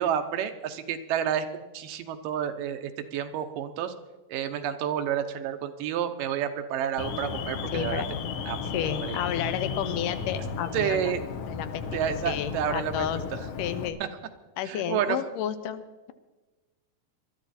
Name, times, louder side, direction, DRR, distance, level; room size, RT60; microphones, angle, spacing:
voice 1, 0.0-3.9 4.3-8.0 8.5-8.7 9.1-9.2 10.7-11.2 11.9-13.1 14.6-15.2, right 9 dB, 85° right, 8 dB, 2.6 m, -30 dB
Alarm, 7.0-13.9, left 5 dB, 65° left, 1.6 m, -34 dB
voice 2, 7.7-8.4 8.7-11.1 11.5-11.8 12.3-13.2 13.6-14.0 14.6-16.1, left 10 dB, 80° left, 11 dB, 2.3 m, -31 dB
21.0 x 12.5 x 4.3 m, 1.2 s
omnidirectional pair, 3.8 m